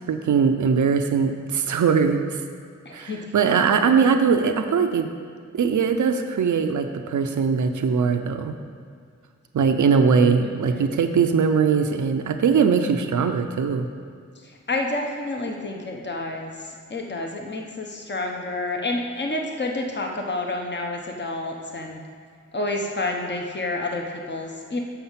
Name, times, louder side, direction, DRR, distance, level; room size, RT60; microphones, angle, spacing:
voice 1, 0.1-2.4 2.9-5.1 5.5-8.5 9.5-13.9, right 6 dB, 85° right, 6 dB, 0.6 m, -21 dB
voice 2, 2.8-3.2 10.4-10.9 14.7-16.5 16.9-22.0 22.5-24.8, left 2 dB, 35° left, 1 dB, 1.1 m, -29 dB
7.2 x 5.7 x 5.7 m, 2.1 s
cardioid pair, 50°, 29 cm